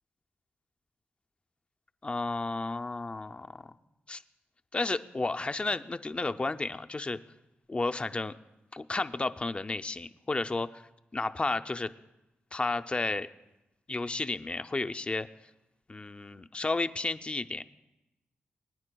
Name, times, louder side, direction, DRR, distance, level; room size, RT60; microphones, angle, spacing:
voice 1, 2.0-3.5 4.1-4.2 4.7-7.2 7.7-8.3 8.7-10.8 11.1-11.9 12.5-13.3 13.9-15.3 15.9-17.6, left 3 dB, 30° left, 9 dB, 0.5 m, -32 dB
24.0 x 9.4 x 2.3 m, 0.94 s
cardioid pair, 75°, 4 cm